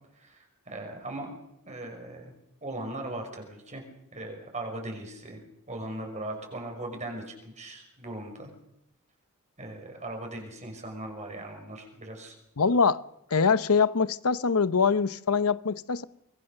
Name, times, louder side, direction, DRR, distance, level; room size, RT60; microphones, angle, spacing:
voice 1, 0.1-1.3 1.7-3.8 4.1-8.5 9.6-12.4, right 1 dB, 30° right, 5.9 m, -39 dB
voice 2, 12.6-13.0 13.3-16.0, left 5 dB, 75° left, 0.8 m, -23 dB
24.5 x 21.5 x 6.7 m
head